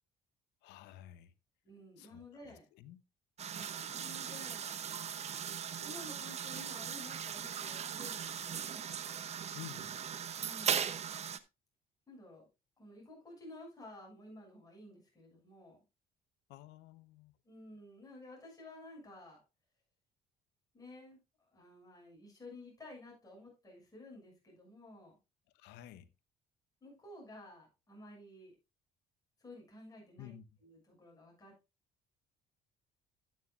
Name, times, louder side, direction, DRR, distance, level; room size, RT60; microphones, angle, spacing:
voice 1, 0.6-1.3 2.0-3.0 9.5-10.0 16.5-17.4 25.5-26.1 30.2-30.4, left 13 dB, 90° left, 0.9 m, -52 dB
voice 2, 1.6-2.6 3.5-4.8 5.8-9.0 10.4-11.0 12.1-12.5 12.8-15.8 17.4-19.4 20.7-25.1 26.8-28.5 29.4-30.3 30.6-31.5, left 1 dB, 20° left, 6.6 m, -53 dB
sound 1, 3.4-11.4, right 8 dB, 40° right, 0.8 m, -39 dB
11.5 x 9.3 x 2.5 m
cardioid pair, 110°, 17 cm